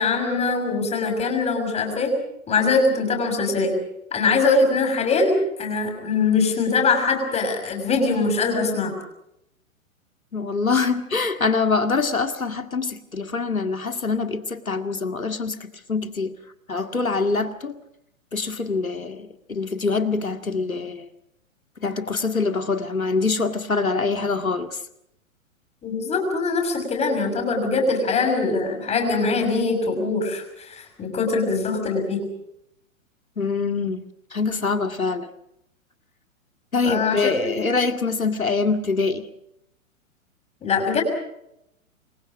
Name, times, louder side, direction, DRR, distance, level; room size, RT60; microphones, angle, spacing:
voice 1, 0.0-2.2 2.5-3.7 4.1-8.9 25.8-32.2 36.8-37.7 40.6-41.0, left 4 dB, 15° left, 4 dB, 6.4 m, -22 dB
voice 2, 10.3-16.3 16.7-17.8 18.3-21.1 21.8-24.8 33.4-34.0 34.3-35.3 36.7-39.3, left 4 dB, 80° left, 8 dB, 2.1 m, -24 dB
27.5 x 23.0 x 5.1 m, 0.79 s
figure-of-eight pair, 115°, 41 cm